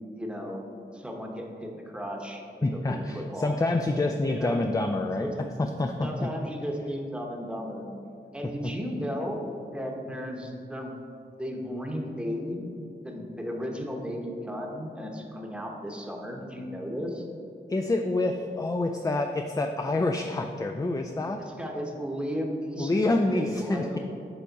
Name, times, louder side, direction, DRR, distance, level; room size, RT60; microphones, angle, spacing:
voice 1, 0.1-0.6 0.9-3.6 3.9-4.5 5.2-5.4 6.0-7.8 8.3-10.9 11.4-12.7 13.0-17.2 21.5-24.0, equal, 5° right, 0 dB, 0.9 m, -35 dB
voice 2, 2.6-5.3 5.6-6.1 8.6-8.7 17.7-21.4 22.8-24.0, left 2 dB, 20° left, 4 dB, 0.3 m, -27 dB
7.0 x 3.5 x 4.0 m, 2.5 s
cardioid pair, 45°, 19 cm